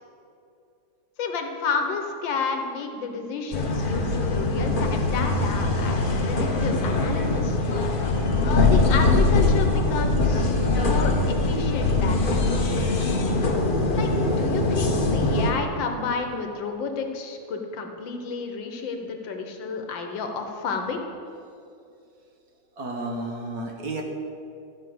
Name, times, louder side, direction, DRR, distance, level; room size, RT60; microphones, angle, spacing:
voice 1, 1.2-7.6 8.4-12.6 13.9-21.0, left 4 dB, 70° left, 4 dB, 1.7 m, -31 dB
sound 1, 3.5-15.5, left 2 dB, 40° left, 0.8 m, -22 dB
voice 2, 22.8-24.0, right 2 dB, 55° right, 2 dB, 1.4 m, -32 dB
13.5 x 5.5 x 7.8 m, 2.6 s
omnidirectional pair, 2.2 m